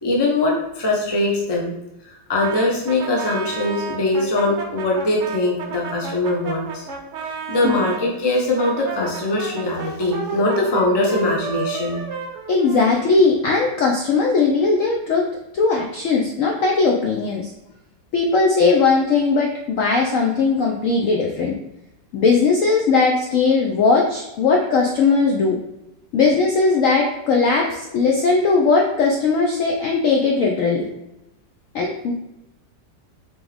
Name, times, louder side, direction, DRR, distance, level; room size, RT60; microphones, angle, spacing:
voice 1, 0.0-1.7 2.1-6.8 7.5-12.0, left 2 dB, 30° left, -3 dB, 0.5 m, -21 dB
Brass instrument, 2.4-8.0 8.6-13.3, right 5 dB, 65° right, 0.7 m, -32 dB
voice 2, 12.5-15.3 15.5-17.5 18.1-21.6 22.1-25.6 26.1-30.8 31.7-32.1, left 4 dB, 75° left, -1 dB, 0.7 m, -18 dB
4.1 x 3.0 x 3.4 m, 0.90 s
omnidirectional pair, 1.9 m